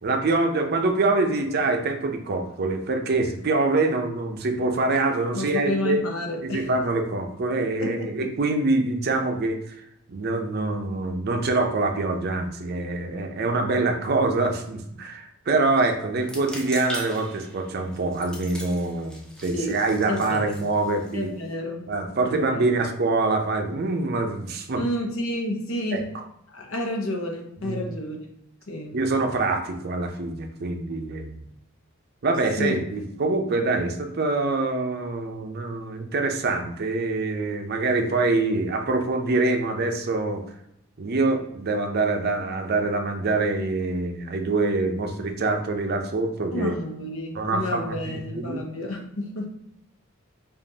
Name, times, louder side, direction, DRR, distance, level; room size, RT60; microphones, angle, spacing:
voice 1, 0.0-6.0 6.4-9.8 10.1-21.3 21.9-24.8 25.9-26.0 27.6-27.8 28.9-31.4 32.2-40.4 41.0-46.8 47.3-48.6, right 3 dB, 50° right, 5 dB, 0.5 m, -25 dB
voice 2, 5.3-6.7 7.8-8.3 19.5-19.8 20.1-20.7 21.1-21.9 22.2-22.7 24.7-26.0 26.5-28.2 28.7-29.0 32.6-32.9 46.5-49.5, left 1 dB, 75° left, 1 dB, 0.8 m, -30 dB
sound 1, 16.2-21.5, equal, 5° left, 0.5 m, -41 dB
5.1 x 2.5 x 2.7 m, 0.77 s
head